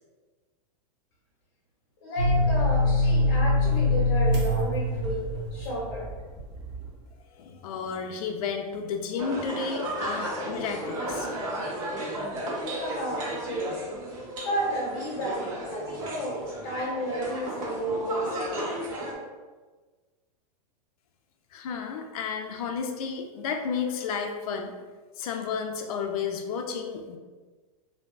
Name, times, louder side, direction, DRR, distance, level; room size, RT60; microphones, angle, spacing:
voice 1, 2.0-5.2 5.5-6.1 12.8-13.7 14.4-18.8, equal, 40° left, -3 dB, 0.9 m, -32 dB
sound 1, 2.2-6.8, left 1 dB, 20° right, 0.4 m, -24 dB
voice 2, 7.3-11.3 21.5-24.7 25.2-27.2, left 6 dB, 70° left, 3 dB, 0.4 m, -32 dB
sound 2, 9.2-19.1, right 1 dB, 55° right, 1.0 m, -34 dB
3.3 x 2.6 x 2.3 m, 1.4 s
supercardioid pair, 180°, 19 cm